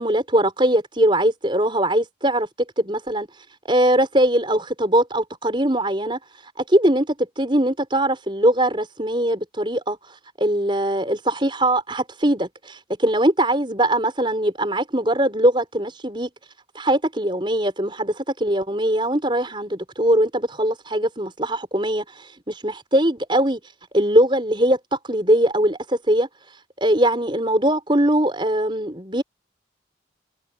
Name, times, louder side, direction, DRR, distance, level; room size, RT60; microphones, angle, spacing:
voice 1, 0.0-2.5 2.8-3.3 3.7-16.3 16.8-23.6 23.9-26.3 26.8-29.2, right 1 dB, 25° right, 5.2 m, -21 dB
head